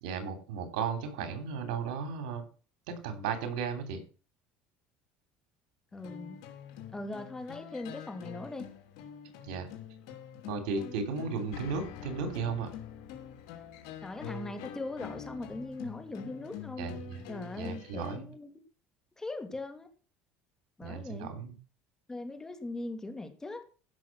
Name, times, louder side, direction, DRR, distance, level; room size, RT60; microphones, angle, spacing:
voice 1, 0.0-2.4 2.9-4.0 9.4-9.7 10.5-12.7 16.8-17.2 17.6-18.3 20.8-21.5, right 5 dB, 85° right, 8 dB, 3.2 m, -35 dB
sound 1, 5.9-18.2, left 8 dB, 80° left, 2.9 m, -45 dB
voice 2, 5.9-6.4 6.9-8.7 14.0-16.9 17.3-18.6 19.2-19.9 20.8-21.3 22.1-23.6, left 2 dB, 15° left, 7 dB, 2.5 m, -40 dB
15.0 x 6.2 x 6.0 m, 0.38 s
supercardioid pair, 110°, 4 cm